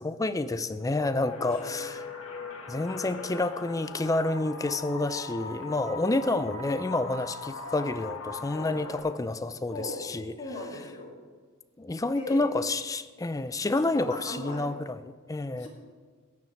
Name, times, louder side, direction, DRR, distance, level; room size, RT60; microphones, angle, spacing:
voice 1, 0.0-2.0 2.7-10.4 11.8-15.7, left 2 dB, 15° left, 12 dB, 0.4 m, -29 dB
sound 1, 0.9-9.0, left 4 dB, 75° left, 1.8 m, -40 dB
voice 2, 1.4-1.8 6.0-6.3 8.5-8.8 9.7-10.0 10.4-11.1 12.2-12.4 13.8-14.7 15.6-15.7, left 2 dB, 35° left, -3 dB, 2.8 m, -39 dB
13.5 x 9.7 x 4.5 m, 1.5 s
head